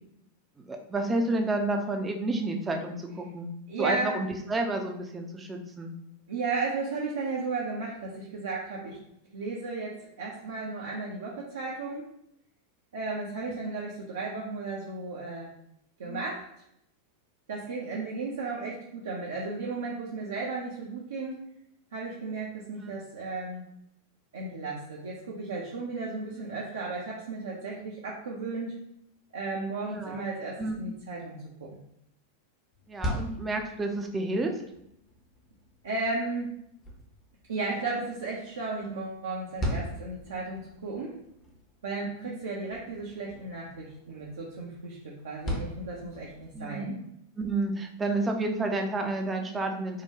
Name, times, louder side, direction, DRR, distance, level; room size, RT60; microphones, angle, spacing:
voice 1, 0.6-3.5 3.8-5.9 13.4-13.6 16.0-16.2 22.8-22.9 26.3-26.6 29.9-30.2 30.6-30.9 32.9-34.6 42.0-42.4 46.5-47.0 47.4-50.0, right 2 dB, 15° right, 3 dB, 0.5 m, -31 dB
voice 2, 3.7-4.2 6.3-9.0 9.3-12.0 12.9-15.5 16.0-16.5 17.5-21.4 21.9-23.7 24.3-28.8 29.3-31.8 35.8-36.5 37.5-41.2 41.8-47.0, right 3 dB, 65° right, -4 dB, 0.6 m, -34 dB
sound 1, 32.7-46.7, equal, 25° left, 0.7 m, -40 dB
3.7 x 2.2 x 2.8 m, 0.77 s
figure-of-eight pair, 90°, 0 cm